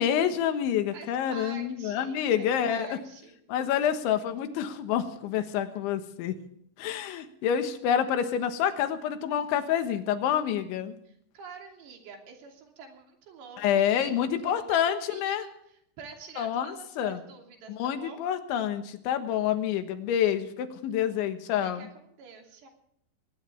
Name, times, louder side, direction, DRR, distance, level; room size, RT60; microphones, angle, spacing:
voice 1, 0.0-2.9 3.5-6.3 6.8-11.0 13.6-15.4 16.4-17.2 17.7-21.9, left 9 dB, 85° left, 8 dB, 3.7 m, -28 dB
voice 2, 0.9-3.3 3.6-4.0 11.1-14.1 14.4-18.3 21.6-22.7, right 5 dB, 65° right, 2 dB, 5.0 m, -47 dB
21.0 x 18.5 x 3.5 m, 0.69 s
omnidirectional pair, 5.3 m